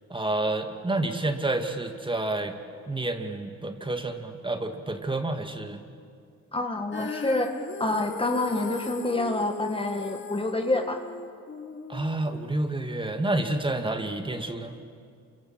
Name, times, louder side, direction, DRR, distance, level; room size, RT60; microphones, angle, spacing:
voice 1, 0.1-2.6 2.9-5.8 11.9-14.8, right 2 dB, 15° right, 6 dB, 2.4 m, -29 dB
voice 2, 6.5-7.5 7.8-11.0, left 2 dB, 20° left, 4 dB, 1.8 m, -27 dB
Female singing, 6.9-13.1, left 5 dB, 40° left, 1.8 m, -39 dB
28.0 x 26.0 x 7.8 m, 2.3 s
cardioid pair, 90°, 30 cm